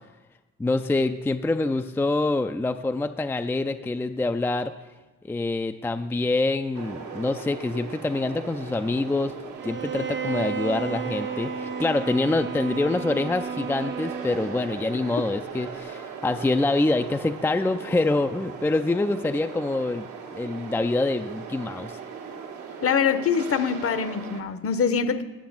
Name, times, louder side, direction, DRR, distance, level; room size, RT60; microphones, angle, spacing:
voice 1, 0.6-4.7 5.2-9.3 9.6-20.1 20.3-22.0, left 2 dB, 10° left, 8 dB, 0.4 m, -25 dB
sound 1, 6.7-24.4, right 6 dB, 75° right, 1.4 m, -39 dB
Bowed string instrument, 9.6-14.7, right 6 dB, 40° right, 0.6 m, -33 dB
voice 2, 22.8-25.2, left 6 dB, 50° left, 11 dB, 0.9 m, -24 dB
9.5 x 6.9 x 7.3 m, 1.2 s
cardioid pair, 90°, 30 cm